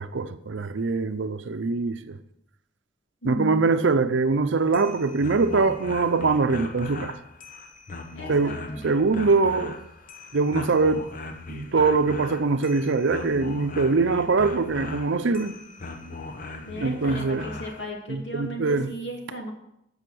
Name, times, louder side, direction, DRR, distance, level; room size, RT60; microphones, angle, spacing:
voice 1, 0.0-2.2 3.2-7.2 8.3-9.8 10.3-11.1 11.5-15.6 16.8-17.5 18.1-18.9, right 4 dB, 90° right, 0.6 m, -23 dB
voice 2, 3.2-3.6 8.1-8.8 16.6-19.5, right 1 dB, 75° left, 2.5 m, -36 dB
sound 1, 4.6-17.8, left 3 dB, 45° left, 1.0 m, -39 dB
14.5 x 5.7 x 6.2 m
head